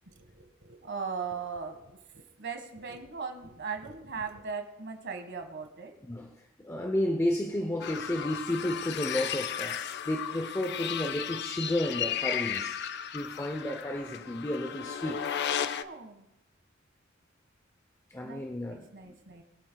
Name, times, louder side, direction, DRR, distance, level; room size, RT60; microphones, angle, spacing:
voice 1, 0.0-6.0 15.7-16.3 18.2-18.4 18.7-19.4, right 5 dB, 60° right, 1.6 m, -39 dB
voice 2, 6.1-12.8 13.1-15.3 18.1-19.1, left 1 dB, 15° left, 0.7 m, -32 dB
sound 1, 7.8-15.8, left 9 dB, 55° left, 0.5 m, -34 dB
22.0 x 8.7 x 2.3 m
head